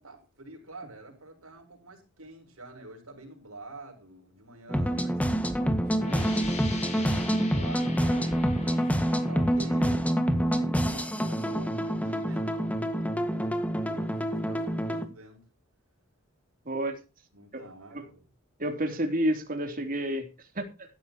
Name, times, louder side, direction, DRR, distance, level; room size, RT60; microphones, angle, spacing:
voice 1, 0.0-6.3 6.9-15.4 17.3-18.3, right 2 dB, 75° right, 7.2 m, -48 dB
sound 1, 4.7-15.1, equal, 5° left, 1.9 m, -27 dB
sound 2, 6.0-11.5, left 3 dB, 35° left, 5.4 m, -43 dB
voice 2, 16.6-17.0 17.9-18.0 18.6-20.3 20.5-20.7, right 1 dB, 40° right, 3.4 m, -29 dB
16.0 x 13.0 x 3.1 m
head